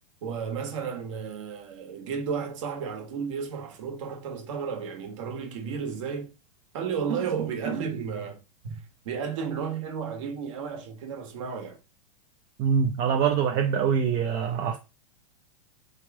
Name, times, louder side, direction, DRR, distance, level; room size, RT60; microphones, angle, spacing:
voice 1, 0.2-6.3 6.7-8.8 9.0-11.8, right 6 dB, 55° right, 1.3 m, -33 dB
voice 2, 12.6-14.8, right 7 dB, 25° right, 0.4 m, -24 dB
3.5 x 3.3 x 4.6 m
supercardioid pair, 165°, 19 cm